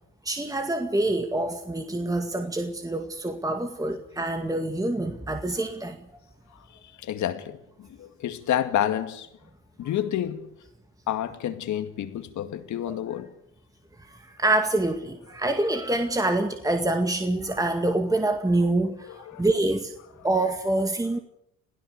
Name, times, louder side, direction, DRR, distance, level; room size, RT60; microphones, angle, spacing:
voice 1, 0.2-6.0 12.9-13.0 14.0-19.9 20.2-21.2, right 2 dB, 10° right, 2.0 m, -26 dB
voice 2, 7.0-9.3 9.8-10.5 11.1-13.3 19.1-19.5, left 11 dB, 65° left, 2.3 m, -29 dB
27.0 x 16.5 x 6.8 m
supercardioid pair, 80°, 31 cm